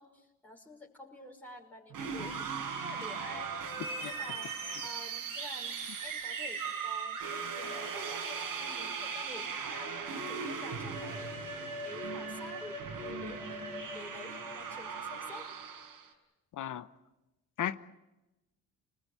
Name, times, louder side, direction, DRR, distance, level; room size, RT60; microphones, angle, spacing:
voice 1, 0.0-3.5 4.0-4.5 4.8-11.5 11.8-15.5, left 2 dB, 5° left, 0 dB, 5.5 m, -50 dB
sound 1, 1.9-16.1, right 5 dB, 75° right, 5.9 m, -38 dB
voice 2, 16.5-16.9 17.6-17.9, left 11 dB, 60° left, 12 dB, 1.0 m, -35 dB
29.5 x 20.5 x 8.3 m, 1.0 s
cardioid pair, 95°, 34 cm